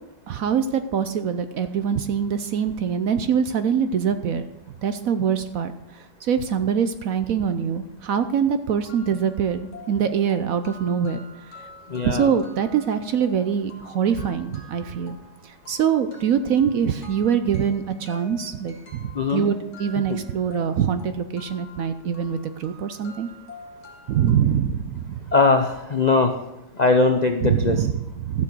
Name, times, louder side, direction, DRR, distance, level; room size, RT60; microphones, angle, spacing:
voice 1, 0.3-4.4 4.8-11.2 12.0-15.2 15.4-23.3 24.1-25.2 27.4-28.4, right 7 dB, 65° right, 10 dB, 0.9 m, -24 dB
sound 1, 8.3-8.4 8.8-24.3, left 2 dB, 40° left, 2.2 m, -47 dB
voice 2, 11.9-12.3 19.1-19.4 20.1-20.2 25.3-26.4 26.7-27.9, left 3 dB, 85° left, 5 dB, 0.3 m, -20 dB
13.0 x 7.3 x 6.1 m, 0.93 s
omnidirectional pair, 2.0 m